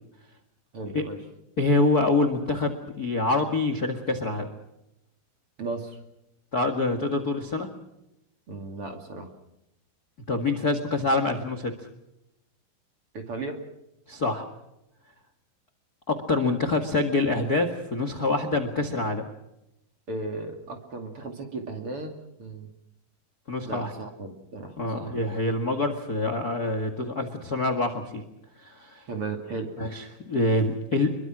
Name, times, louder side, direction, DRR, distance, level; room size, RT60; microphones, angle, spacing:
voice 1, 0.7-1.2 5.6-6.0 8.5-9.3 13.1-13.6 20.1-22.7 23.6-25.4 29.1-29.9, right 3 dB, 40° right, 4 dB, 3.1 m, -36 dB
voice 2, 1.6-4.5 6.5-7.7 10.3-11.7 14.1-14.5 16.1-19.2 23.5-23.9 24.8-28.2 28.6-29.0 29.8-31.2, left 2 dB, 35° left, 9 dB, 1.6 m, -26 dB
27.0 x 23.0 x 6.2 m, 0.87 s
omnidirectional pair, 4.4 m